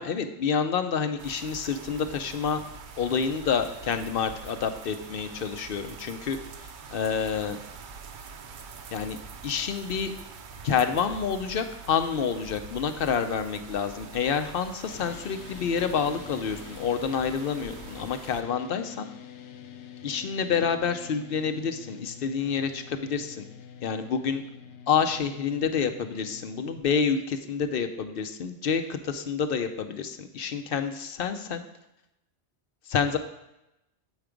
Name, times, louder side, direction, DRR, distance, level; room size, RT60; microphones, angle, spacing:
voice 1, 0.0-2.6 3.0-6.4 6.9-7.6 8.9-10.1 10.6-19.1 20.0-23.4 23.8-24.4 24.9-31.6 32.9-33.2, left 6 dB, 60° left, 8 dB, 0.8 m, -28 dB
sound 1, 1.2-18.4, right 5 dB, 55° right, 0.6 m, -44 dB
sound 2, 14.8-26.8, left 8 dB, 90° left, 0.9 m, -46 dB
8.3 x 4.7 x 5.0 m, 0.87 s
omnidirectional pair, 1.1 m